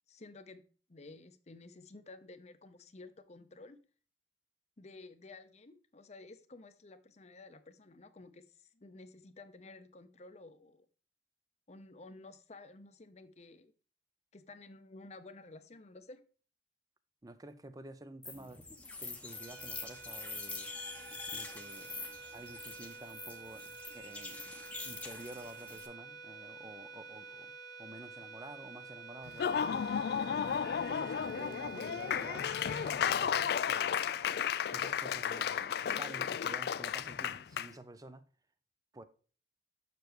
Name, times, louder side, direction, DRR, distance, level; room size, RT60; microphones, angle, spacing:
voice 1, 0.1-0.6 0.9-3.8 4.8-10.9 11.7-13.7 14.3-16.2, left 3 dB, 40° left, 0.7 m, -53 dB
voice 2, 17.2-18.6 19.0-20.7 21.3-22.0 22.3-23.6 23.9-27.5 27.8-29.9 30.3-34.4 34.7-38.3 38.9-39.0, right 1 dB, 20° right, 0.6 m, -50 dB
sound 1, 18.2-25.9, left 3 dB, 5° left, 0.8 m, -45 dB
sound 2, 19.3-33.9, right 4 dB, 75° right, 2.5 m, -50 dB
Laughter / Applause, 29.3-37.7, left 8 dB, 60° left, 0.3 m, -33 dB
6.8 x 6.6 x 3.1 m
head